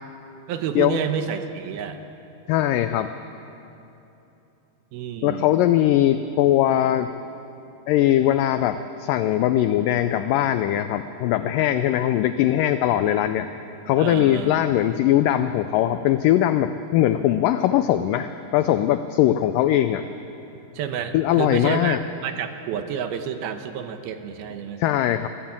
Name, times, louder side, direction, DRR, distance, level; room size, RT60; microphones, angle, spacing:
voice 1, 0.5-2.0 4.9-5.5 14.0-14.6 20.7-22.0 22.2-24.8, right 8 dB, 75° right, 8 dB, 2.8 m, -29 dB
voice 2, 2.5-3.1 5.2-7.1 7.9-13.5 13.9-20.0 21.1-22.0 24.8-25.3, left 12 dB, 85° left, 10 dB, 1.9 m, -20 dB
21.5 x 15.0 x 8.8 m, 2.9 s
omnidirectional pair, 4.5 m